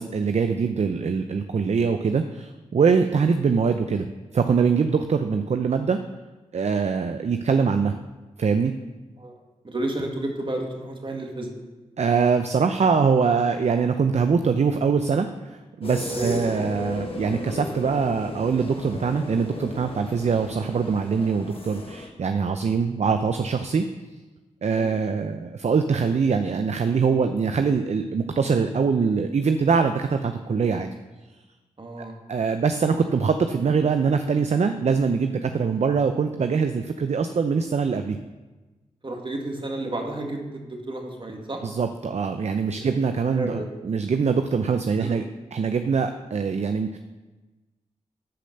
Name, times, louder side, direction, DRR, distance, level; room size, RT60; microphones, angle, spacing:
voice 1, 0.0-4.1 4.3-6.0 6.5-7.9 8.4-8.7 12.0-23.8 24.6-30.9 32.3-38.2 41.6-45.2 45.5-47.0, right 5 dB, 55° right, 8 dB, 0.6 m, -23 dB
voice 2, 9.6-11.5 16.1-16.4 24.7-24.9 31.8-32.2 39.0-41.6 42.8-42.9 43.3-43.7 45.0-45.2, right 2 dB, 40° right, 1 dB, 2.2 m, -31 dB
sound 1, 15.8-22.1, left 2 dB, 45° left, 1.7 m, -36 dB
11.5 x 5.2 x 6.5 m, 1.2 s
supercardioid pair, 40°, 13 cm